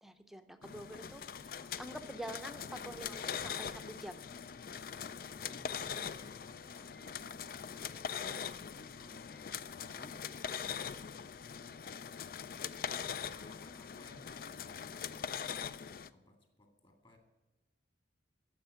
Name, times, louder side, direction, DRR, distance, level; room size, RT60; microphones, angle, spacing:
voice 1, 0.0-4.2 6.0-6.1, right 1 dB, ahead, 9 dB, 0.6 m, -47 dB
sound 1, 0.6-16.1, left 7 dB, 50° left, 0.4 m, -42 dB
voice 2, 4.7-10.2 10.8-11.4 13.2-17.2, left 1 dB, 30° left, 5 dB, 2.0 m, -61 dB
10.0 x 7.4 x 9.2 m, 1.1 s
head